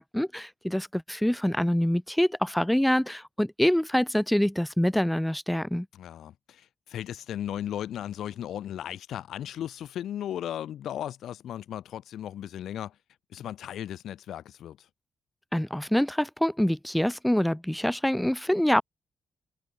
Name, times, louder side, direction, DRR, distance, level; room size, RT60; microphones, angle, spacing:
voice 1, 0.0-5.9 15.5-18.8, equal, 5° left, 3.7 m, -25 dB
voice 2, 5.9-12.9 13.3-14.9, left 11 dB, 85° left, 6.6 m, -36 dB
wide cardioid pair, 145°, 0 cm